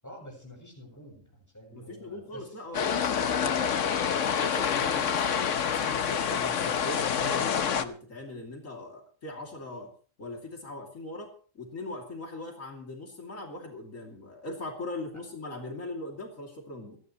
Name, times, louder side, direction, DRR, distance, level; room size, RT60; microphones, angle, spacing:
voice 1, 0.0-2.6, equal, 15° left, -1 dB, 8.0 m, -48 dB
voice 2, 1.7-3.9 4.2-9.9 10.2-17.0, left 2 dB, 85° left, 1 dB, 3.2 m, -40 dB
sound 1, 2.7-7.8, left 7 dB, 70° left, 1.3 m, -27 dB
28.5 x 11.0 x 3.1 m, 0.41 s
omnidirectional pair, 1.3 m